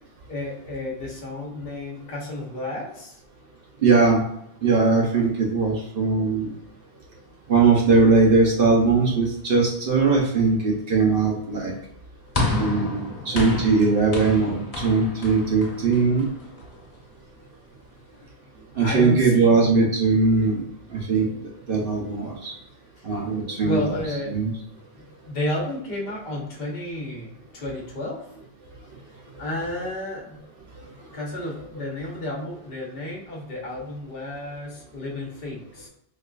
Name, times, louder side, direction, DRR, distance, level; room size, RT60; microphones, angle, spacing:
voice 1, 0.3-3.2 6.3-6.6 7.2-7.3 10.2-10.3 18.1-19.7 23.0-23.1 23.6-24.4 24.9-28.3 29.4-30.4 31.1-35.9, left 1 dB, 70° left, -2 dB, 1.1 m, -32 dB
voice 2, 3.8-4.2 4.6-6.5 7.5-11.7 12.6-16.2 18.8-20.6 20.9-21.3 21.7-22.5 23.0-23.8 24.3-24.5, right 4 dB, 65° right, -1 dB, 0.9 m, -20 dB
sound 1, 12.3-16.8, left 2 dB, 40° left, 1.0 m, -29 dB
4.4 x 2.3 x 2.4 m, 0.75 s
omnidirectional pair, 1.0 m